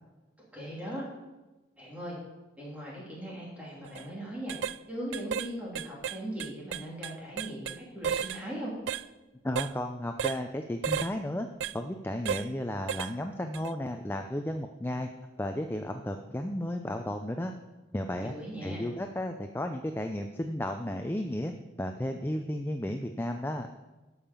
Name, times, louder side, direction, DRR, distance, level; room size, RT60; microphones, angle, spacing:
voice 1, 0.4-1.0 1.8-2.2 2.6-4.6 4.9-8.7 18.2-18.9, equal, 5° right, -5 dB, 3.3 m, -39 dB
sound 1, 3.8-4.0 4.5-4.8 5.1-5.5 5.7-7.8 8.0-8.4 8.9-9.0 9.6-9.7 10.2-10.4 10.8-11.1 11.6-11.7 12.3-12.5 12.9-13.1 13.5-13.7, right 8 dB, 75° right, 0.3 m, -33 dB
voice 2, 9.4-11.5 11.7-15.1 15.4-17.5 17.9-18.3 18.6-21.5 21.8-23.7, left 1 dB, 10° left, 5 dB, 0.4 m, -33 dB
12.0 x 5.6 x 7.0 m, 1.1 s
head